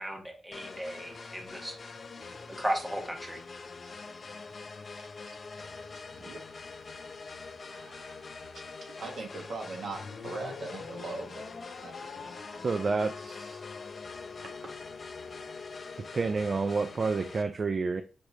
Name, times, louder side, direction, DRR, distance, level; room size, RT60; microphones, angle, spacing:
voice 1, 0.0-1.8 2.6-3.4, right 1 dB, 10° right, 2 dB, 1.0 m, -35 dB
sound 1, 0.5-17.4, left 4 dB, 45° left, 0.6 m, -44 dB
voice 2, 7.6-8.6 9.0-11.4 11.8-12.3, right 3 dB, 75° right, 1 dB, 1.5 m, -41 dB
sound 2, 9.9-16.4, left 5 dB, 85° left, 0.8 m, -46 dB
voice 3, 12.6-13.6 16.1-18.0, right 4 dB, 45° right, 8 dB, 0.3 m, -29 dB
5.9 x 3.2 x 2.7 m, 0.35 s
cardioid pair, 100°, 0 cm